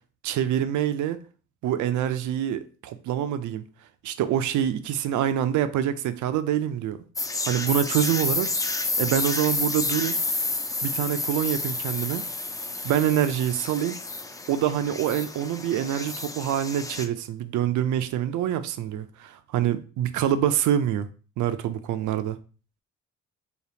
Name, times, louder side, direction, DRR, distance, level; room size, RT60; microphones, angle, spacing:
voice 1, 0.2-1.2 1.6-3.6 4.0-7.0 7.5-8.5 9.0-10.2 10.8-12.2 12.8-14.0 14.5-21.1 21.4-22.4, right 10 dB, 75° right, 0.5 m, -26 dB
sound 1, 7.2-17.1, left 3 dB, 10° left, 0.4 m, -30 dB
5.1 x 2.3 x 2.8 m
cardioid pair, 90°, 30 cm